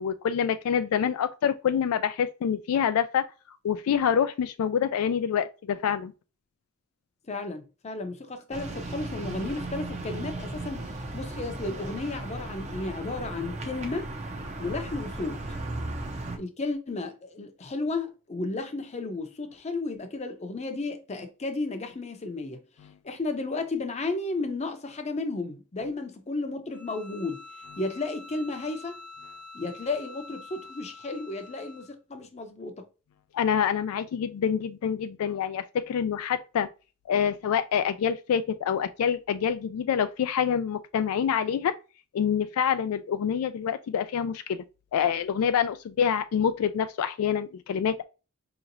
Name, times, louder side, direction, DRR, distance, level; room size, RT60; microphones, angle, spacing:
voice 1, 0.0-3.2 3.6-6.1 33.3-36.7 37.1-41.7 42.1-44.6 44.9-48.0, left 8 dB, 75° left, 0.3 m, -26 dB
voice 2, 7.3-14.1 14.6-15.4 16.4-22.6 23.0-27.4 27.8-29.0 29.5-32.9, left 3 dB, 30° left, 0.6 m, -33 dB
sound 1, 8.5-16.4, right 2 dB, 30° right, 0.6 m, -36 dB
Bowed string instrument, 26.7-31.9, left 3 dB, 80° right, 1.0 m, -46 dB
4.9 x 2.9 x 2.6 m
head